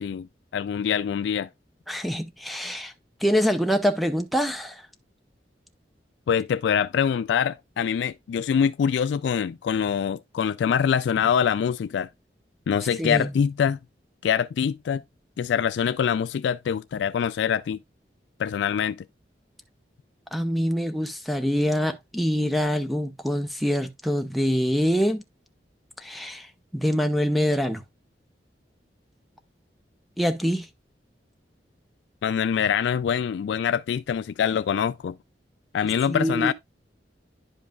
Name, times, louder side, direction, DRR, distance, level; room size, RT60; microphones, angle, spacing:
voice 1, 0.0-1.5 6.3-12.1 12.7-13.8 14.2-15.0 15.4-17.8 18.4-19.0 32.2-35.2 35.7-36.5, left 7 dB, 85° left, 0.3 m, -24 dB
voice 2, 1.9-2.9 3.2-4.9 13.0-13.3 20.3-25.2 26.0-27.8 30.2-30.7 36.1-36.5, equal, ahead, 0.6 m, -25 dB
10.5 x 5.4 x 2.3 m
head